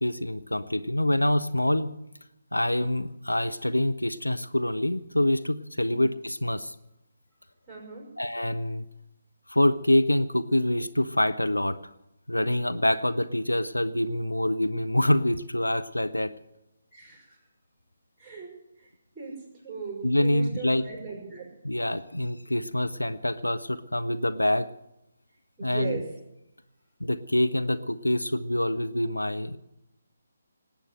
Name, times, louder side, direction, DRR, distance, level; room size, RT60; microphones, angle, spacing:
voice 1, 0.0-1.9 2.5-6.7 8.2-8.8 9.5-11.8 12.3-16.3 20.0-20.9 21.6-24.7 25.6-26.0 27.0-29.6, left 1 dB, 80° left, 11 dB, 0.7 m, -26 dB
voice 2, 7.7-8.1 16.9-17.3 18.2-18.5 18.8-18.9 19.1-19.3 19.6-21.5 25.6-26.1, right 5 dB, 5° right, -2 dB, 6.0 m, -38 dB
19.0 x 8.9 x 7.8 m, 0.87 s
figure-of-eight pair, 145°, 0 cm